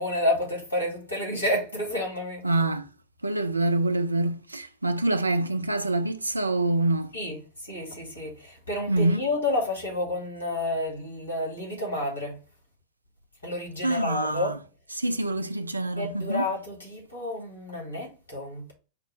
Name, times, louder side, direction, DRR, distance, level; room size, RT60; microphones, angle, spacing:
voice 1, 0.0-2.4 7.1-12.4 13.4-14.6 16.0-18.7, left 1 dB, 80° left, 2.3 m, -30 dB
voice 2, 2.4-2.9 3.2-7.1 8.9-9.2 13.8-14.5 15.0-16.4, right 2 dB, 80° right, 0.4 m, -26 dB
5.0 x 2.1 x 4.4 m
figure-of-eight pair, 90°, 0 cm